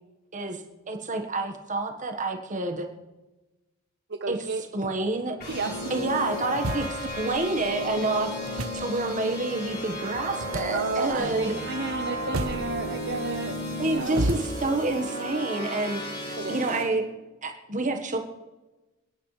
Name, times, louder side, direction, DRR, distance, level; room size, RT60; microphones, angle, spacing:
voice 1, 0.9-2.9 4.3-4.4 4.7-5.4 5.9-11.5 13.8-17.0 17.4-18.2, right 2 dB, 35° right, 5 dB, 1.5 m, -28 dB
voice 2, 4.1-4.6 5.5-5.8 10.7-13.6 13.9-14.2 16.4-16.6, right 4 dB, 55° right, 6 dB, 0.7 m, -32 dB
sound 1, 5.4-16.8, left 1 dB, 50° left, 4.6 m, -34 dB
sound 2, 5.4-14.6, right 2 dB, 85° right, 1.0 m, -36 dB
27.5 x 10.0 x 3.3 m, 1.1 s
head